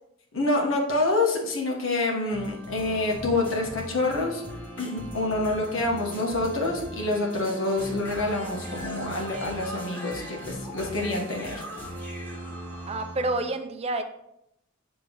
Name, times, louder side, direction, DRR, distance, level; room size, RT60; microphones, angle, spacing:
voice 1, 0.3-4.4 4.8-11.6, left 2 dB, 75° left, 0 dB, 1.4 m, -27 dB
sound 1, 2.3-13.4, equal, 10° left, 1.7 m, -39 dB
voice 2, 12.9-14.0, right 2 dB, 30° right, 7 dB, 0.5 m, -28 dB
8.0 x 3.4 x 3.9 m, 0.80 s
head